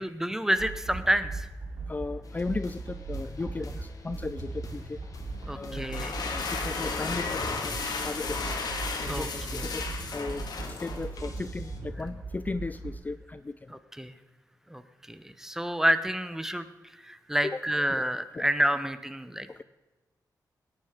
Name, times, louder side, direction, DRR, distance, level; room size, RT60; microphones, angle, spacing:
voice 1, 0.0-1.5 5.5-6.1 9.1-9.3 9.5-9.6 13.7-14.1 14.7-14.8 15.1-16.7 17.0-19.6, right 1 dB, 5° right, 12 dB, 0.8 m, -29 dB
sound 1, 0.6-12.9, right 3 dB, 85° right, 2.7 m, -38 dB
voice 2, 1.9-5.0 5.5-5.9 6.2-8.5 9.0-13.8 17.4-17.6 17.9-18.0 18.3-18.5 19.5-19.6, left 3 dB, 25° left, 12 dB, 0.4 m, -36 dB
sound 2, 2.2-11.8, left 3 dB, 55° left, 1.7 m, -49 dB
sound 3, 5.8-11.4, left 4 dB, 70° left, 1.9 m, -34 dB
17.5 x 9.8 x 5.1 m, 1.1 s
wide cardioid pair, 110°, 7 cm